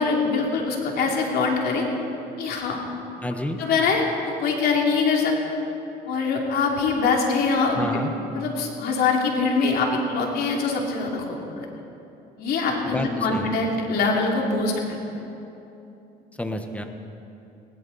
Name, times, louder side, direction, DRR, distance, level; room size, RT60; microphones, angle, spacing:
voice 1, 0.0-1.8 2.4-2.8 3.6-5.5 6.1-8.0 8.3-11.7 12.4-15.0, left 4 dB, 70° left, 0 dB, 2.9 m, -23 dB
voice 2, 3.2-3.6 7.8-8.1 12.8-13.5 16.4-16.8, left 1 dB, 10° left, 6 dB, 1.3 m, -29 dB
21.0 x 16.5 x 4.2 m, 2.9 s
cardioid pair, 110°, 17 cm